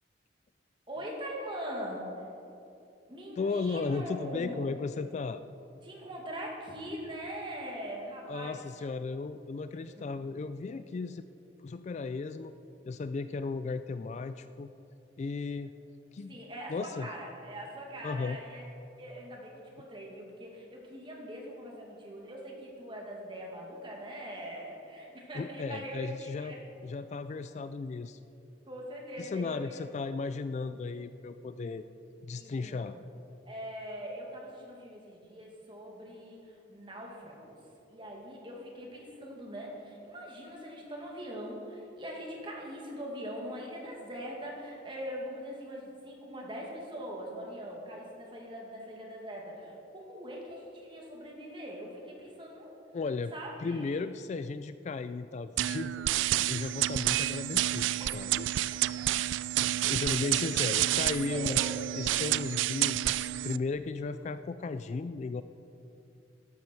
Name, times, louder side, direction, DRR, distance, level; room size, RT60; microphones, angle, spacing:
voice 1, 0.9-2.1 3.1-4.6 5.8-8.6 16.3-18.6 19.0-26.6 28.7-29.8 32.4-33.0 33.5-37.6 37.9-52.7 53.3-53.9 58.0-58.1 59.0-59.1 60.2-60.3 61.3-61.8, equal, 25° right, -2 dB, 2.3 m, -42 dB
voice 2, 3.4-5.4 8.3-11.3 11.6-12.5 12.8-14.7 15.2-15.7 16.1-16.4 16.7-17.1 18.0-18.4 25.3-26.6 26.8-28.2 29.2-31.8 32.2-33.0 52.9-53.3 53.6-56.0 56.5-58.5 58.7-58.8 59.6-61.7 62.0-65.4, left 4 dB, 40° left, 12 dB, 0.3 m, -35 dB
sound 1, 55.6-63.6, right 14 dB, 85° right, 0.3 m, -29 dB
13.0 x 12.0 x 4.6 m, 2.7 s
head